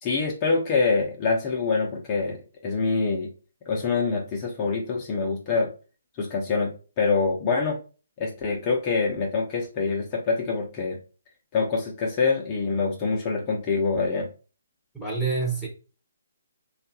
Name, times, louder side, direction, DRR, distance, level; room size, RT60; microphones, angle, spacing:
voice 1, 0.0-3.3 3.7-5.7 6.2-7.8 8.2-11.0 11.5-14.3, left 4 dB, 25° left, 0.7 m, -25 dB
voice 2, 14.9-15.7, right 4 dB, ahead, 0.9 m, -27 dB
3.3 x 2.4 x 2.8 m
hypercardioid pair, 145°, 0 cm